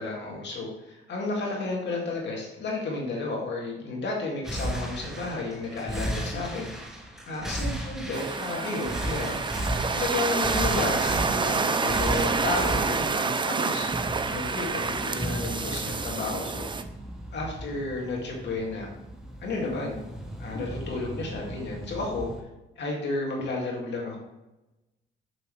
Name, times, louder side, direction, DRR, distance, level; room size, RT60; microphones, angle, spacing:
voice 1, 0.0-6.7 7.2-9.4 9.9-16.7 17.3-18.9 19.4-20.0 20.4-22.3 22.8-24.2, left 3 dB, 60° left, -2 dB, 2.4 m, -32 dB
sound 1, 4.4-22.4, right 1 dB, ahead, 1.2 m, -35 dB
sound 2, 8.1-16.8, right 4 dB, 25° right, 0.5 m, -28 dB
7.0 x 6.4 x 3.3 m, 0.97 s
cardioid pair, 90°, 20 cm